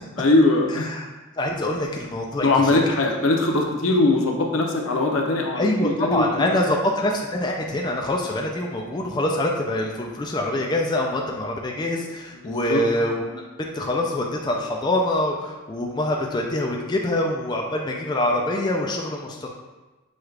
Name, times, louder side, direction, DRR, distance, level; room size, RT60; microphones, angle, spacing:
voice 1, 0.2-0.9 2.4-6.6 12.4-12.8, left 2 dB, 80° left, 2 dB, 0.6 m, -21 dB
voice 2, 0.7-1.1 1.4-2.8 5.5-19.5, left 1 dB, 20° left, 0 dB, 0.3 m, -25 dB
6.2 x 2.4 x 3.2 m, 1.2 s
head